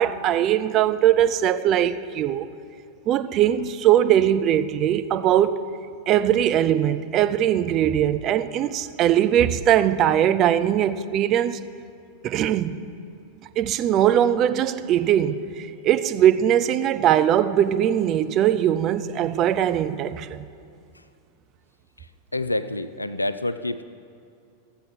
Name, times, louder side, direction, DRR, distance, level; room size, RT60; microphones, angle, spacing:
voice 1, 0.0-2.5 3.1-5.6 6.1-11.6 12.2-12.8 13.6-20.5, right 10 dB, 35° right, 0.4 m, -21 dB
voice 2, 22.3-23.8, left 2 dB, 85° left, 0.3 m, -27 dB
13.0 x 7.7 x 4.2 m
figure-of-eight pair, 90°, 0 cm